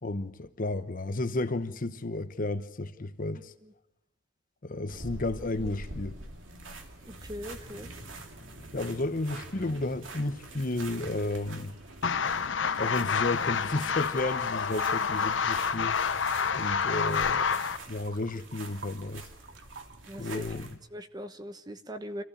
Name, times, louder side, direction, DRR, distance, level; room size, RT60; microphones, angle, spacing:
voice 1, 0.0-3.5 4.6-6.2 8.7-11.8 12.8-16.0 16.5-17.6 17.9-19.3 20.2-20.8, left 2 dB, 45° left, 1.0 m, -32 dB
sound 1, 4.9-20.8, right 2 dB, 90° right, 2.8 m, -45 dB
voice 2, 7.0-7.9 20.1-20.5 20.9-22.2, equal, 20° right, 1.1 m, -40 dB
sound 2, 12.0-17.8, left 6 dB, 70° left, 0.9 m, -28 dB
sound 3, 14.5-16.0 16.3-20.7, right 4 dB, 60° right, 1.6 m, -48 dB
26.0 x 15.0 x 8.5 m
head